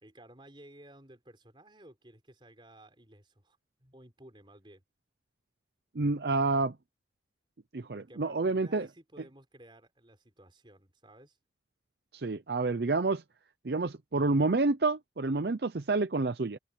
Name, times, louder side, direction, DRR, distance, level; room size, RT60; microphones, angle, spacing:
voice 1, 0.0-4.8 7.9-11.4, right 1 dB, 25° right, 4.5 m, -55 dB
voice 2, 5.9-6.8 7.7-8.9 12.1-13.2 13.6-16.6, right 3 dB, 60° right, 0.6 m, -28 dB
open air
head